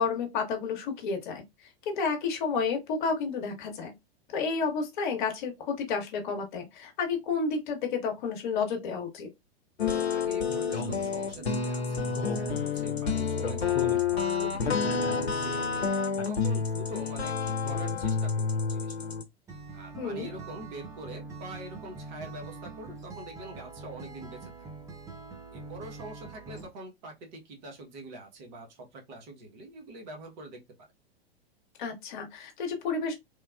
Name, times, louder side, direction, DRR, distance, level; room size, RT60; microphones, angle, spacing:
voice 1, 0.0-1.4 1.9-3.9 4.3-9.3 20.0-20.3 31.8-33.1, left 5 dB, 50° left, 0.9 m, -31 dB
sound 1, 9.8-19.2, left 5 dB, 85° left, 0.6 m, -29 dB
voice 2, 9.8-12.1 12.3-15.9 16.2-19.1 19.7-24.7 25.5-30.6, right 2 dB, 45° right, 0.9 m, -45 dB
Acoustic guitar, 19.5-26.7, right 3 dB, 10° right, 0.4 m, -44 dB
3.1 x 2.2 x 2.2 m
figure-of-eight pair, 100°, 31 cm